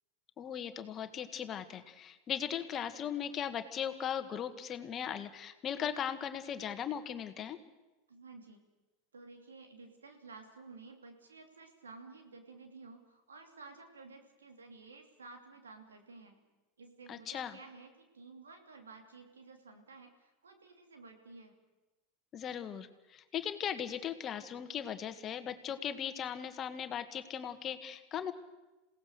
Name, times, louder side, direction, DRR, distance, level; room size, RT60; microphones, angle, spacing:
voice 1, 0.4-7.6 17.1-17.6 22.3-28.3, left 9 dB, 35° left, 10 dB, 1.7 m, -38 dB
voice 2, 8.1-8.6 9.1-16.4 16.8-21.5, right 3 dB, 90° right, 4 dB, 2.9 m, -53 dB
27.5 x 17.5 x 6.5 m, 1.1 s
hypercardioid pair, 90°, 0 cm